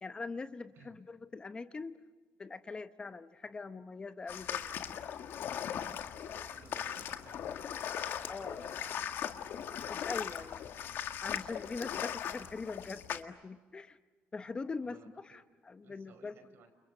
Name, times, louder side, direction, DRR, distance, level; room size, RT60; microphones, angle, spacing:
voice 1, 0.0-2.0 2.4-4.6 8.3-8.7 9.9-10.6 11.0-14.0 14.3-16.3, left 4 dB, 20° left, 10 dB, 0.9 m, -42 dB
sound 1, 4.3-13.2, left 9 dB, 60° left, 1.7 m, -39 dB
voice 2, 6.2-7.7 8.1-9.1 14.8-15.4 15.8-16.7, right 5 dB, 60° right, 8 dB, 5.7 m, -59 dB
30.0 x 29.5 x 6.7 m, 1.4 s
cardioid pair, 145°, 4 cm